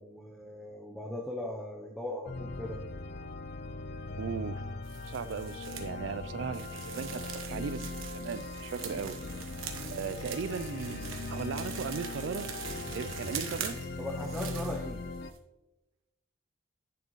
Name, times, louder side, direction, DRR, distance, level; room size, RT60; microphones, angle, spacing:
voice 1, 0.0-2.8 14.0-15.0, left 1 dB, ahead, 0.6 m, -39 dB
sound 1, 2.3-15.3, left 3 dB, 50° left, 0.4 m, -40 dB
voice 2, 4.2-4.6 5.1-9.2 9.9-12.5 12.9-13.8, right 6 dB, 70° right, 0.4 m, -37 dB
sound 2, 4.8-5.9 6.5-15.4, right 7 dB, 90° right, 1.1 m, -43 dB
10.5 x 6.6 x 3.1 m
head